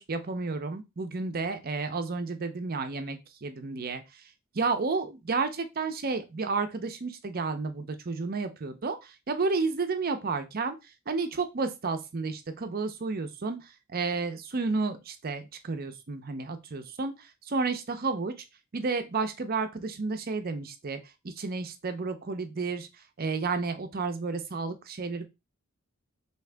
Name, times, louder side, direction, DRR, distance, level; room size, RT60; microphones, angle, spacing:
voice 1, 0.0-4.0 4.6-10.8 11.1-18.3 18.7-21.0 21.2-22.9 23.2-25.3, right 4 dB, 45° right, 8 dB, 0.6 m, -31 dB
3.7 x 2.9 x 3.3 m, 0.24 s
head